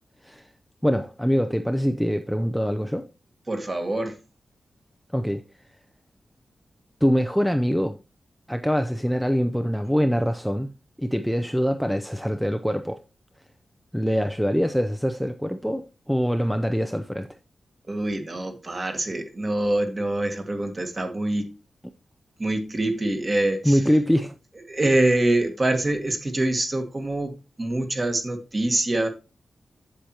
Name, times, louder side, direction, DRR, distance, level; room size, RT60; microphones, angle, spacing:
voice 1, 0.8-3.1 5.1-5.4 7.0-8.0 8.5-10.7 11.0-13.0 13.9-17.3 23.6-24.4, equal, ahead, 0.5 m, -24 dB
voice 2, 3.5-4.2 17.9-21.5 22.4-23.8 24.7-29.1, right 1 dB, 30° right, 1.7 m, -25 dB
8.1 x 7.6 x 2.9 m
wide cardioid pair, 150°, 0 cm